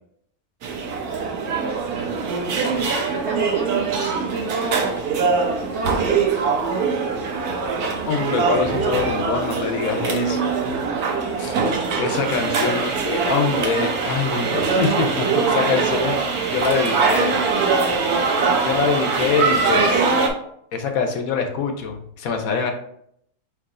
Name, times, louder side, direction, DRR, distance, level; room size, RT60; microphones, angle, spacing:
sound 1, 0.6-20.3, right 5 dB, 75° right, 1.2 m, -22 dB
voice 1, 2.5-6.3 10.4-10.5, right 3 dB, 60° right, 0 dB, 0.8 m, -29 dB
voice 2, 8.1-10.4 11.4-11.6 12.0-16.2 16.5-17.4 18.6-20.1 20.7-22.7, left 5 dB, 70° left, 6 dB, 1.0 m, -24 dB
4.6 x 4.3 x 2.5 m, 0.70 s
omnidirectional pair, 1.6 m